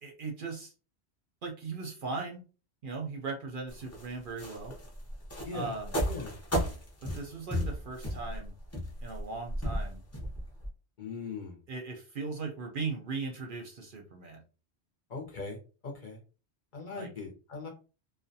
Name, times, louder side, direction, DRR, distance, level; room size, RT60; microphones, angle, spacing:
voice 1, 0.0-0.7 1.4-2.4 2.8-4.7 5.5-5.9 7.1-8.5 9.0-10.0 11.7-14.4 17.0-17.1, right 4 dB, 60° right, 2 dB, 0.6 m, -38 dB
sound 1, 3.7-10.7, equal, 20° left, 0.5 m, -34 dB
voice 2, 5.4-5.7 6.1-6.3 11.0-11.6 15.1-15.6 15.8-16.2 16.7-17.7, left 4 dB, 50° left, 0 dB, 0.7 m, -39 dB
2.4 x 2.1 x 2.6 m, 0.34 s
omnidirectional pair, 1.2 m